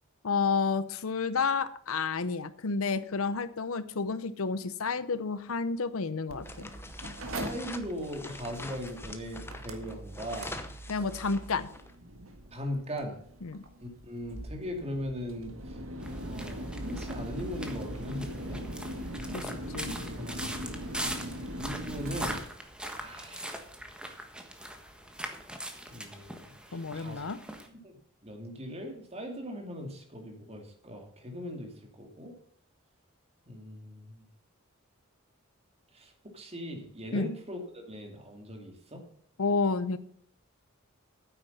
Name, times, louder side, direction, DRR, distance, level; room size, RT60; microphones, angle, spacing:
voice 1, 0.2-6.7 10.9-11.7 13.4-13.6 19.3-20.0 26.7-27.4 37.1-37.3 39.4-40.0, left 4 dB, 80° left, 15 dB, 0.8 m, -30 dB
Mechanical fan, 6.3-22.4, right 1 dB, 75° right, 1.8 m, -41 dB
sound 1, 6.4-11.9, left 2 dB, 10° left, 1.0 m, -44 dB
voice 2, 7.3-10.6 12.5-13.2 13.8-15.8 16.2-18.6 20.2-20.8 21.5-22.4 23.0-23.6 25.9-27.2 27.7-28.0 28.2-32.3 33.5-34.2 35.9-39.0, equal, 30° right, 3 dB, 2.4 m, -39 dB
sound 2, 16.0-27.7, right 1 dB, 5° right, 1.4 m, -41 dB
9.6 x 8.3 x 5.5 m, 0.64 s
head